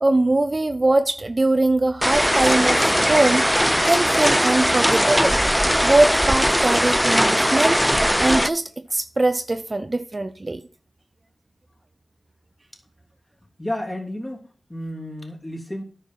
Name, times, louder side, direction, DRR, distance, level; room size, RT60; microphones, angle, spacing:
voice 1, 0.0-2.8 3.1-3.5 3.8-5.4 5.8-7.9 8.2-10.6, right 2 dB, 35° right, 0.7 m, -21 dB
sound 1, 2.0-8.5, equal, ahead, 0.4 m, -19 dB
voice 2, 13.6-15.8, left 1 dB, 20° left, 3.1 m, -32 dB
9.9 x 5.6 x 7.4 m
cardioid pair, 50°, 0 cm